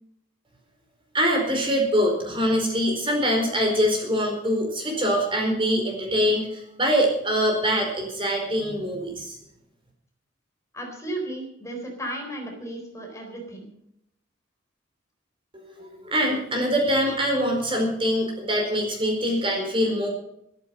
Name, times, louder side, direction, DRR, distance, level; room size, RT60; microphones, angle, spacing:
voice 1, 1.1-9.4 15.5-20.1, equal, 30° right, 1 dB, 4.5 m, -24 dB
voice 2, 10.7-13.7, right 1 dB, 15° left, 2 dB, 4.0 m, -34 dB
13.5 x 13.5 x 5.4 m, 0.76 s
head